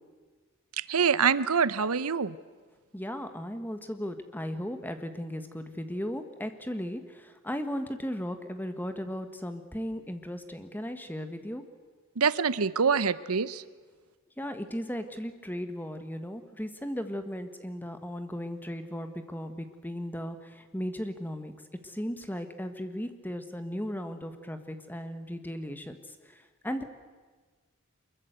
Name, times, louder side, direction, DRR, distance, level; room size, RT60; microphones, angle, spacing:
voice 1, 0.9-2.3 12.2-13.6, right 6 dB, 90° right, 16 dB, 0.8 m, -25 dB
voice 2, 2.9-11.6 14.4-21.5 21.8-26.8, equal, 10° left, 8 dB, 1.4 m, -36 dB
24.0 x 22.0 x 8.1 m, 1.4 s
head